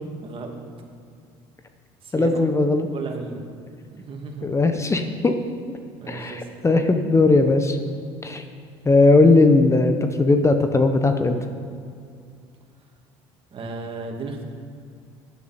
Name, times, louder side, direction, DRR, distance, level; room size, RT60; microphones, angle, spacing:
voice 1, 0.2-0.5 2.0-2.4 2.9-3.4 4.0-4.4 6.0-6.6 13.5-14.4, right 4 dB, 45° right, 2 dB, 2.4 m, -34 dB
voice 2, 2.1-2.9 4.4-5.4 6.1-7.8 8.2-8.4 8.8-11.4, left 3 dB, 20° left, 7 dB, 1.1 m, -18 dB
14.0 x 11.0 x 4.4 m, 2.3 s
hypercardioid pair, 75°, 13 cm